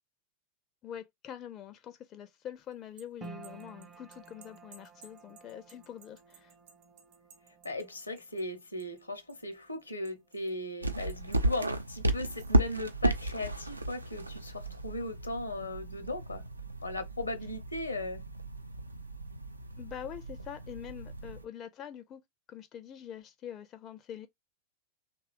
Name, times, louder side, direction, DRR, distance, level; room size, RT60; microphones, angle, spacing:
voice 1, 0.8-6.5 19.8-22.2 22.5-24.3, left 10 dB, 30° left, 0.4 m, -45 dB
sound 1, 2.7-9.0 9.3-10.5 11.1-11.7 12.1-12.6, right 6 dB, 55° right, 0.8 m, -58 dB
sound 2, 3.2-15.6 15.9-16.8 17.3-17.4, right 4 dB, 20° right, 0.5 m, -56 dB
voice 2, 7.6-16.4 16.8-18.2, left 2 dB, 80° left, 0.7 m, -37 dB
sound 3, 10.8-21.4, right 1 dB, 85° right, 0.3 m, -34 dB
2.9 x 2.2 x 3.0 m
figure-of-eight pair, 90°, 0 cm